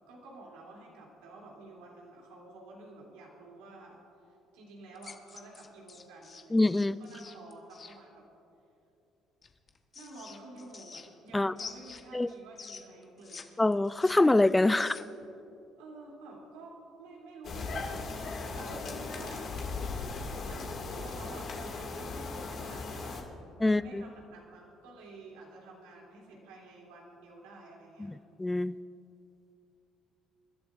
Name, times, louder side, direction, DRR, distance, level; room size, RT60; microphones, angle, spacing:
voice 1, 0.1-4.0 4.5-8.2 9.9-13.5 15.8-19.5 20.5-20.6 20.9-28.2, right 2 dB, 80° right, -2 dB, 2.8 m, -50 dB
sound 1, 5.0-8.0 9.4-11.3 11.6-13.4 13.7-15.2, left 5 dB, 40° left, 1.1 m, -47 dB
voice 2, 6.5-7.0 11.3-11.5 12.1-12.3 13.6-15.0 23.6-24.0 28.0-28.1 28.4-28.8, left 2 dB, 15° left, 17 dB, 0.3 m, -25 dB
sound 2, 17.4-23.2, left 3 dB, 55° left, 2.0 m, -38 dB
27.5 x 12.0 x 2.5 m, 2.8 s
hypercardioid pair, 60°, 0 cm